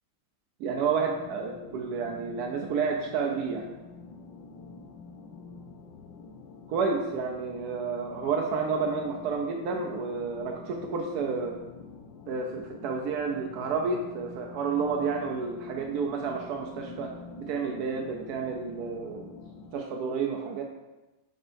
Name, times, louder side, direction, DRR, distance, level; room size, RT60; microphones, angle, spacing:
sound 1, 0.6-19.8, left 4 dB, 75° left, 1.3 m, -47 dB
voice 1, 0.6-3.7 6.7-11.6 12.3-19.3 19.7-20.6, right 5 dB, 70° right, 1 dB, 1.0 m, -30 dB
7.8 x 5.3 x 2.6 m, 1.1 s
omnidirectional pair, 2.1 m